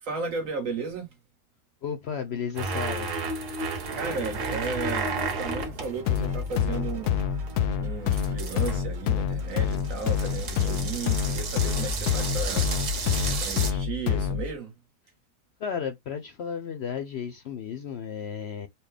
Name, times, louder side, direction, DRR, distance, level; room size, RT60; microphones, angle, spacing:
voice 1, 0.0-1.1 3.9-5.1 5.4-7.2 7.8-12.7 13.4-14.7, right 4 dB, 60° right, 1.8 m, -34 dB
voice 2, 1.8-3.2 15.6-18.7, left 7 dB, 65° left, 0.6 m, -33 dB
sound 1, 2.6-13.7, right 3 dB, 90° right, 1.7 m, -33 dB
sound 2, 3.8-13.4, right 3 dB, 40° right, 0.7 m, -45 dB
sound 3, 6.1-14.5, left 8 dB, 85° left, 1.1 m, -27 dB
4.2 x 2.2 x 3.3 m
omnidirectional pair, 1.6 m